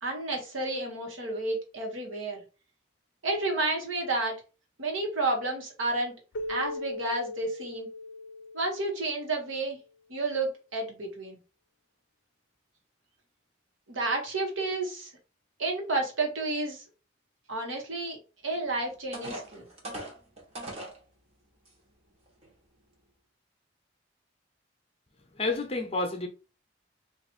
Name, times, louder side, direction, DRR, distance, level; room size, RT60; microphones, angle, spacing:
voice 1, 0.0-2.4 3.2-4.3 4.8-6.1 6.5-7.9 8.5-9.8 10.1-11.4 13.9-15.1 15.6-16.8 17.5-18.2 18.4-19.7, right 2 dB, 90° right, 1.2 m, -31 dB
Keyboard (musical), 6.3-9.5, left 2 dB, 75° left, 0.5 m, -39 dB
sound 1, 18.6-18.7 19.1-21.0 21.7-21.8 22.3-22.5, right 1 dB, 35° right, 1.0 m, -39 dB
voice 2, 25.3-26.3, left 2 dB, 30° left, 0.7 m, -29 dB
2.9 x 2.5 x 4.2 m
head